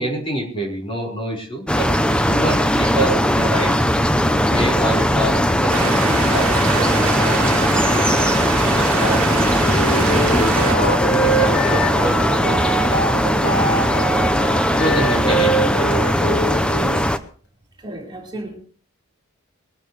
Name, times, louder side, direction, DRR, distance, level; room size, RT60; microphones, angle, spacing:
voice 1, 0.0-2.0 2.3-3.8 4.5-16.5, right 1 dB, 25° left, -1 dB, 4.6 m, -27 dB
sound 1, 1.7-17.2, equal, 5° left, 0.7 m, -19 dB
sound 2, 5.7-10.7, right 6 dB, 70° right, 1.6 m, -25 dB
Wind instrument woodwind instrument, 9.6-17.0, right 2 dB, 55° left, 3.8 m, -24 dB
voice 2, 17.8-18.6, right 1 dB, 20° right, -2 dB, 4.4 m, -34 dB
22.0 x 13.0 x 3.3 m, 0.43 s
head